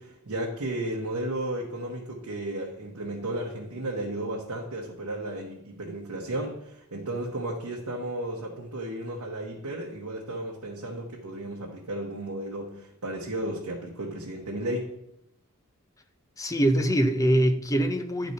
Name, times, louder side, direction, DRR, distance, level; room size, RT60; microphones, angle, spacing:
voice 1, 0.0-14.9, right 1 dB, 85° right, -2 dB, 1.0 m, -34 dB
voice 2, 16.4-18.3, right 1 dB, 15° left, 7 dB, 0.5 m, -23 dB
11.0 x 3.9 x 4.1 m, 0.80 s
head